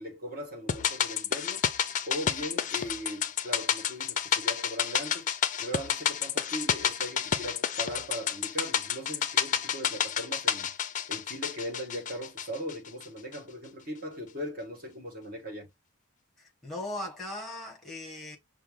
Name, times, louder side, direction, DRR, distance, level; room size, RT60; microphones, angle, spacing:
voice 1, 0.0-1.6 2.1-5.3 5.6-10.7 11.1-15.7, equal, 40° right, 1.6 m, -39 dB
sound 1, 0.7-13.0 13.3-13.4, left 8 dB, 35° left, 0.4 m, -30 dB
voice 2, 16.6-18.4, left 1 dB, ahead, 1.3 m, -38 dB
5.7 x 2.1 x 3.3 m
head